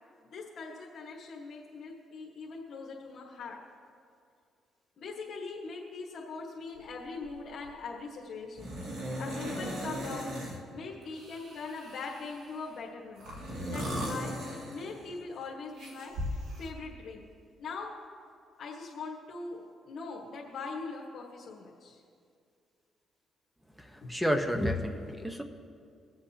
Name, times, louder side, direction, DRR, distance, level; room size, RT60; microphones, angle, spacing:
voice 1, 0.2-3.6 5.0-8.8 9.2-10.3 10.7-13.3 13.6-14.4 14.7-17.3 17.6-17.9 18.6-22.0 24.0-24.1, left 4 dB, 60° left, -5 dB, 1.5 m, -41 dB
sound 1, 6.8-6.9 7.2-7.7 8.6-10.6 11.1-12.5 13.2-15.2 15.8-16.7, equal, 80° right, 1.8 m, -38 dB
voice 2, 23.8-25.4, equal, 5° right, 6 dB, 1.0 m, -30 dB
23.5 x 7.8 x 2.9 m, 2.3 s
cardioid pair, 90°, 0 cm